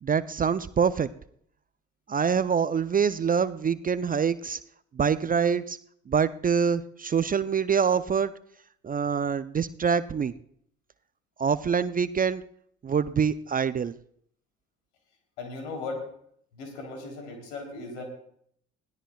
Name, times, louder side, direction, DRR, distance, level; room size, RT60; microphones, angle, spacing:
voice 1, 0.0-1.1 2.1-4.6 4.9-5.8 6.1-8.3 8.8-10.3 11.4-12.4 12.8-14.0, right 6 dB, 25° right, 15 dB, 0.5 m, -25 dB
voice 2, 15.4-16.1 16.5-18.0, left 3 dB, 75° left, 2 dB, 3.4 m, -37 dB
21.0 x 16.5 x 2.3 m, 0.67 s
figure-of-eight pair, 50°, 36 cm